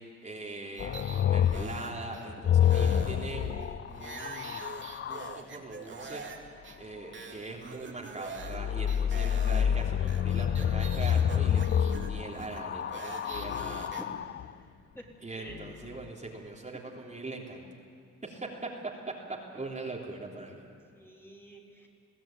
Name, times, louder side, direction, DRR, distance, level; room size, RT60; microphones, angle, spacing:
voice 1, 0.2-4.7 5.1-6.2 6.8-13.9 15.2-17.6 18.2-18.5 19.5-20.6, right 2 dB, 25° right, -2 dB, 3.2 m, -41 dB
sound 1, 0.8-5.4 8.4-14.5 15.5-16.1, left 9 dB, 40° left, 0.5 m, -28 dB
sound 2, 0.8-2.2 2.6-6.4 6.6-6.8 7.1-8.6 8.9-14.0, right 4 dB, 40° right, 2.6 m, -44 dB
voice 2, 13.2-13.6 14.0-14.5 14.9-15.0 15.3-15.8 21.0-21.9, equal, 10° left, -1 dB, 3.5 m, -49 dB
22.0 x 15.5 x 9.0 m, 2.6 s
cardioid pair, 90°, 30 cm